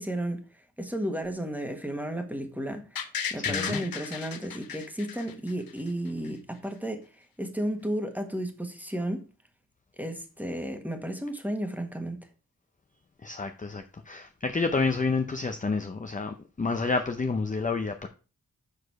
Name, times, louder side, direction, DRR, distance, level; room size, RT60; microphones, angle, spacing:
voice 1, 0.0-9.2 10.0-12.3, right 1 dB, 5° right, 1.4 m, -33 dB
sound 1, 3.0-5.9 6.2-6.3, left 7 dB, 70° left, 0.9 m, -34 dB
voice 2, 3.4-3.8 13.2-18.1, left 4 dB, 20° left, 0.5 m, -29 dB
6.5 x 4.9 x 4.7 m
wide cardioid pair, 70°, 36 cm